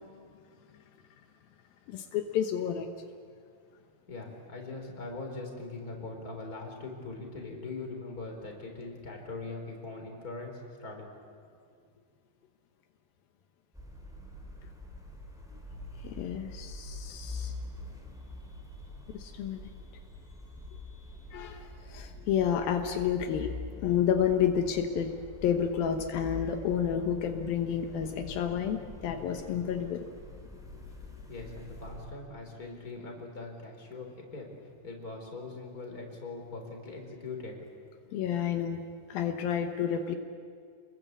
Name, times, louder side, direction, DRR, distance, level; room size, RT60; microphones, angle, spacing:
voice 1, 1.9-2.9 16.0-17.5 19.1-19.7 21.3-30.1 38.1-38.8 39.1-40.2, left 8 dB, 80° left, 5 dB, 3.0 m, -30 dB
voice 2, 4.1-11.4 31.3-34.5 34.8-37.6, left 3 dB, 25° left, 2 dB, 4.3 m, -41 dB
sound 1, 13.7-32.1, left 2 dB, ahead, 3.4 m, -45 dB
29.5 x 21.5 x 8.3 m, 2.2 s
omnidirectional pair, 4.2 m